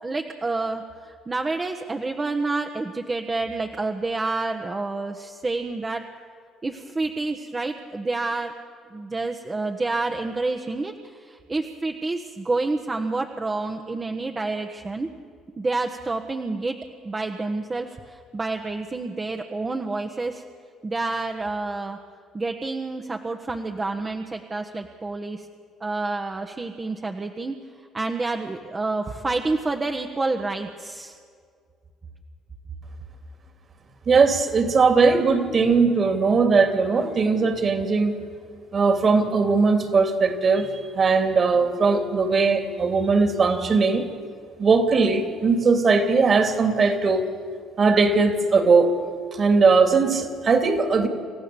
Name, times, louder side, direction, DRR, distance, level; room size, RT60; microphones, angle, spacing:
voice 1, 0.0-6.0 6.6-8.5 8.9-15.1 15.6-16.8 17.0-20.4 20.8-22.0 22.3-25.5 25.8-27.5 27.9-31.2, right 3 dB, 25° right, 3 dB, 1.4 m, -28 dB
voice 2, 34.1-38.2 38.7-40.7 40.9-44.0 44.6-47.2 47.8-49.0 49.3-51.1, right 4 dB, 45° right, 6 dB, 2.9 m, -19 dB
28.5 x 15.0 x 7.0 m, 2.1 s
supercardioid pair, 65°, 0 cm